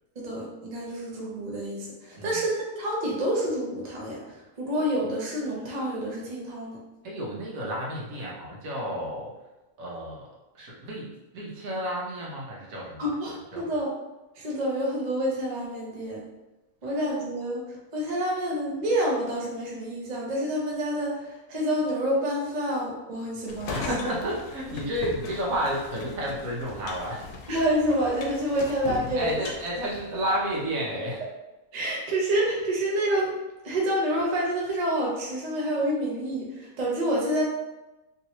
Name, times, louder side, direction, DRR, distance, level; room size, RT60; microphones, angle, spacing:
voice 1, 0.2-6.8 13.0-13.9 14.4-16.2 16.8-23.8 27.5-29.3 30.2-30.3 31.7-33.3 33.6-37.4, right 1 dB, 40° right, -4 dB, 0.6 m, -28 dB
voice 2, 7.0-9.3 9.8-10.3 10.5-13.1 13.5-13.7 16.8-17.0 23.7-27.3 29.1-31.2, equal, 70° right, -4 dB, 1.2 m, -31 dB
sound 1, 23.5-30.7, left 4 dB, 85° left, 1.1 m, -39 dB
3.1 x 2.9 x 2.8 m, 1.0 s
omnidirectional pair, 1.6 m